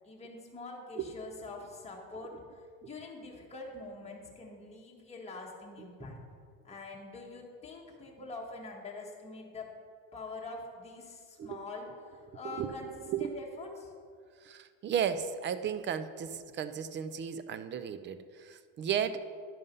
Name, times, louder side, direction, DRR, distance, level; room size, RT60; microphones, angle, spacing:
voice 1, 0.0-6.2 6.6-9.7 10.1-13.9, left 3 dB, 15° left, -2 dB, 1.7 m, -45 dB
voice 2, 13.0-13.3 14.4-19.2, right 8 dB, 30° right, 12 dB, 0.4 m, -34 dB
11.0 x 5.3 x 5.4 m, 2.1 s
cardioid pair, 130°, 40 cm